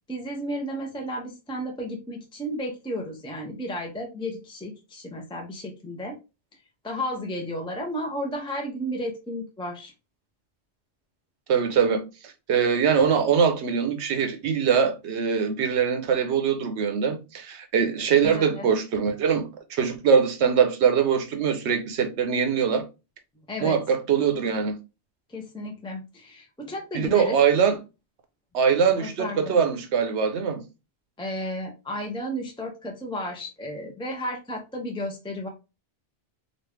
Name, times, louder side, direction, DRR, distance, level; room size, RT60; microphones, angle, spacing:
voice 1, 0.1-6.2 6.8-9.9 18.2-18.7 23.5-23.8 25.3-27.4 29.0-29.6 31.2-35.5, equal, 10° left, 0.3 m, -33 dB
voice 2, 11.5-22.9 23.6-24.8 26.9-27.8 28.5-30.6, right 7 dB, 80° right, 1.0 m, -23 dB
3.1 x 2.4 x 3.1 m
omnidirectional pair, 1.2 m